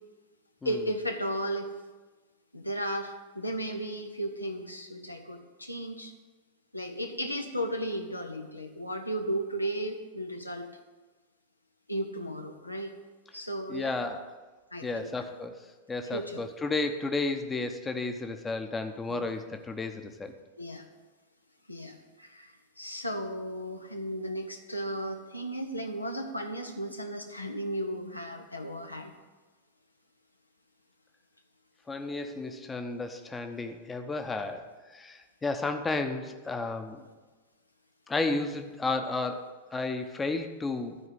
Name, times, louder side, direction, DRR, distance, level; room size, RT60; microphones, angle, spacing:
voice 1, 0.6-1.7 2.5-6.1 6.7-10.8 11.9-12.9 13.3-14.0 14.7-15.1 16.1-16.4 19.1-19.3 20.6-20.8 21.7-29.1 37.0-37.1, right 1 dB, 85° left, 5 dB, 0.9 m, -35 dB
voice 2, 13.7-14.3 14.8-15.6 15.9-20.3 31.9-37.0 38.1-41.0, left 3 dB, 15° left, 6 dB, 0.9 m, -33 dB
12.5 x 4.9 x 8.0 m, 1.3 s
figure-of-eight pair, 90°, 0 cm